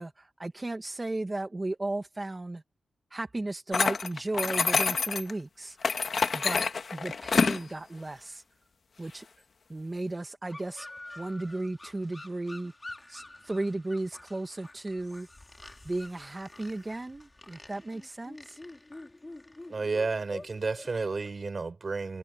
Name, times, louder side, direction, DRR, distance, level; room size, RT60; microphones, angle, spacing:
voice 1, 0.0-2.6 3.1-5.8 6.1-6.6 6.9-8.4 9.0-9.3 9.7-10.9 11.2-12.7 13.1-15.3 15.8-18.6, right 2 dB, 25° right, 1.4 m, -35 dB
sound 1, 3.7-5.3 5.8-7.6, left 5 dB, 55° left, 1.2 m, -27 dB
sound 2, 10.5-21.3, left 2 dB, 20° left, 3.8 m, -48 dB
voice 2, 19.7-22.2, right 4 dB, 40° right, 4.8 m, -31 dB
cardioid pair, 85°, 0 cm